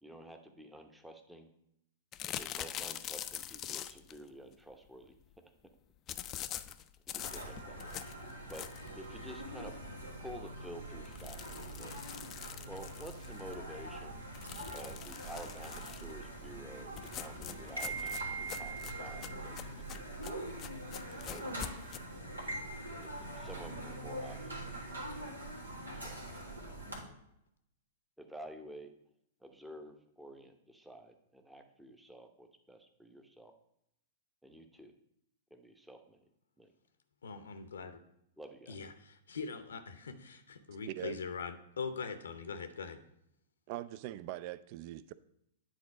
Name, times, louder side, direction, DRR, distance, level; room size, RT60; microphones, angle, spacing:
voice 1, 0.0-1.5 2.3-5.2 7.1-8.0 8.5-8.7 9.0-9.7 10.2-12.0 12.7-14.2 14.7-20.4 21.2-21.5 22.9-24.9 26.0-26.2 28.2-28.9 29.4-33.5 34.4-34.9 35.5-36.2 36.6-36.7 38.4-38.8, right 1 dB, 5° right, 6 dB, 0.8 m, -50 dB
sound 1, 2.1-4.2 6.1-9.0 9.5-9.6 9.9-10.0 10.3-10.4 11.0-13.5 14.3-16.1 17.0-22.0, left 11 dB, 30° left, 0.3 m, -44 dB
sound 2, 7.2-27.0, right 2 dB, 85° right, 1.6 m, -43 dB
voice 2, 37.2-38.0 38.7-43.0, left 5 dB, 70° left, 9 dB, 0.7 m, -42 dB
voice 3, 40.9-41.2 43.7-45.1, right 15 dB, 45° right, 16 dB, 0.4 m, -42 dB
9.1 x 3.9 x 4.9 m, 0.78 s
figure-of-eight pair, 105°, 0 cm